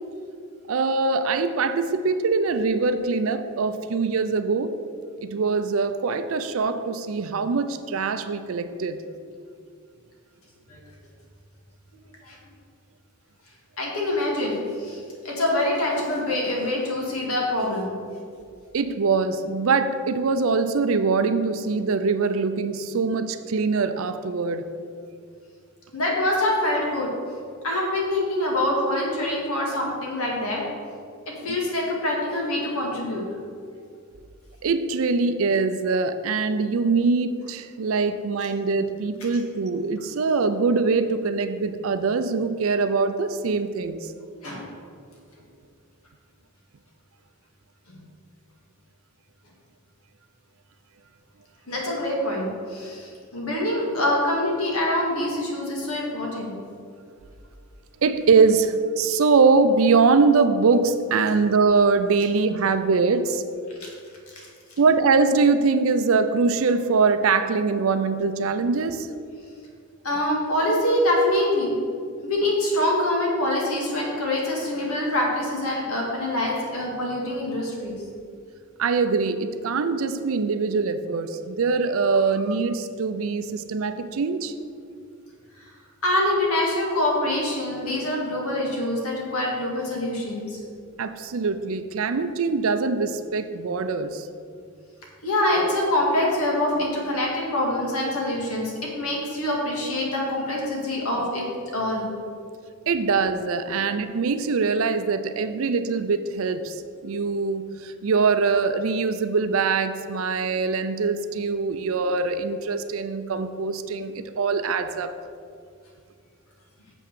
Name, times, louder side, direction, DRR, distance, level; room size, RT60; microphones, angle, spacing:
voice 1, 0.7-4.7 5.2-9.0 18.7-24.7 34.6-44.0 52.9-53.0 58.0-63.4 64.8-69.1 78.8-84.5 91.0-94.3 102.9-115.2, right 4 dB, 65° right, 10 dB, 0.5 m, -23 dB
voice 2, 13.8-18.0 25.9-27.1 27.6-30.6 31.4-33.2 44.4-44.7 51.7-56.5 63.8-63.9 64.4-64.5 70.0-71.7 72.2-78.0 86.0-90.6 95.2-98.7 99.0-101.4 101.7-102.1, left 1 dB, 80° left, -2 dB, 2.2 m, -25 dB
7.0 x 5.9 x 6.7 m, 2.3 s
head